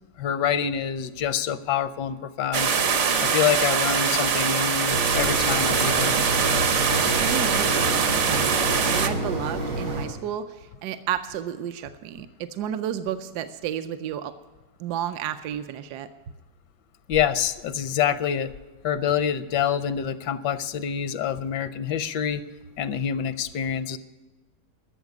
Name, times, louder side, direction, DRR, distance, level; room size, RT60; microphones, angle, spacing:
voice 1, 0.2-2.7 3.2-6.1 17.1-18.5 18.8-22.4 22.8-24.0, left 8 dB, 80° left, 13 dB, 1.2 m, -26 dB
sound 1, 2.5-9.1, right 6 dB, 50° right, 1.0 m, -23 dB
sound 2, 4.9-10.1, right 1 dB, 90° right, 3.6 m, -29 dB
voice 2, 7.2-14.3 14.8-16.1, right 10 dB, 75° right, 10 dB, 1.1 m, -32 dB
13.0 x 7.3 x 9.5 m, 1.2 s
omnidirectional pair, 1.9 m